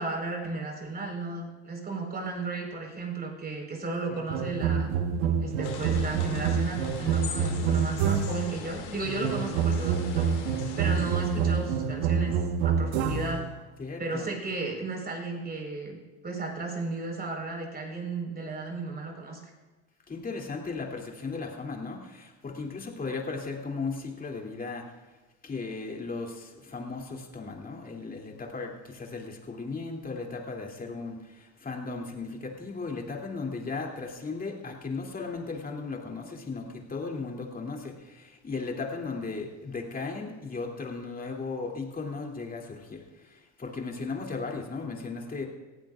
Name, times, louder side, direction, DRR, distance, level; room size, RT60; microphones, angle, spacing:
voice 1, 0.0-4.9 5.4-12.4 12.6-13.4 14.0-16.0 16.2-19.5, right 3 dB, 25° right, 1 dB, 4.4 m, -34 dB
sound 1, 4.3-8.5 9.2-13.5, right 6 dB, 75° right, 1.3 m, -27 dB
sound 2, 5.6-11.9, left 6 dB, 85° left, 2.6 m, -41 dB
voice 2, 13.8-14.3 20.1-24.9 25.4-45.5, left 4 dB, 25° left, 0 dB, 2.8 m, -36 dB
19.0 x 15.0 x 2.5 m, 1.2 s
hypercardioid pair, 85°, 35 cm